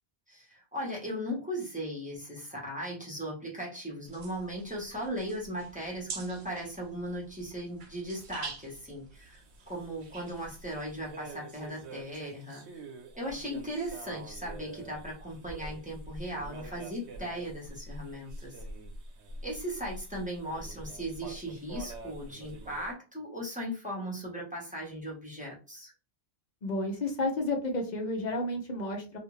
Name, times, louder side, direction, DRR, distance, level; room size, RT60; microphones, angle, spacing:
voice 1, 0.3-12.7 13.2-18.6 19.4-25.9, equal, 10° right, -4 dB, 0.9 m, -38 dB
sound 1, 4.0-11.1, right 5 dB, 55° right, 0.6 m, -47 dB
sound 2, 9.1-22.9, right 2 dB, 80° right, 0.9 m, -46 dB
voice 2, 26.6-29.2, left 2 dB, 50° left, 1 dB, 0.6 m, -31 dB
2.5 x 2.4 x 3.0 m, 0.33 s
omnidirectional pair, 1.1 m